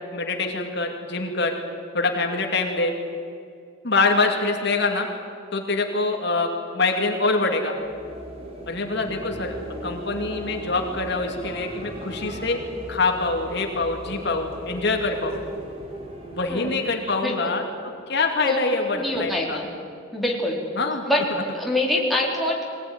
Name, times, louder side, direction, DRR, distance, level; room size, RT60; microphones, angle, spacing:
voice 1, 0.1-1.6 1.9-2.9 3.8-5.1 5.5-7.8 8.7-9.5 9.8-12.6 12.9-15.4 16.3-19.6 20.8-21.4, left 3 dB, 60° left, 3 dB, 2.5 m, -25 dB
sound 1, 7.6-17.0, equal, 30° right, 3.8 m, -37 dB
voice 2, 16.5-16.8 17.2-17.5 18.4-18.6 18.9-19.7 20.1-20.6 21.1-21.2 21.5-22.6, left 1 dB, ahead, -1 dB, 4.0 m, -24 dB
22.5 x 18.5 x 9.6 m, 2.4 s
head